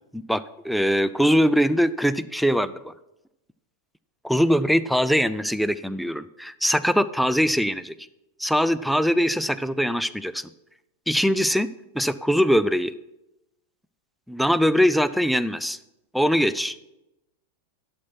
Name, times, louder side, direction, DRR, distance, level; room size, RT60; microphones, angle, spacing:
voice 1, 0.1-2.9 4.2-7.9 8.4-10.5 11.1-11.7 11.9-12.9 14.3-15.8 16.1-16.9, equal, ahead, 14 dB, 0.3 m, -22 dB
11.5 x 6.7 x 4.5 m, 0.93 s
figure-of-eight pair, 90°, 0 cm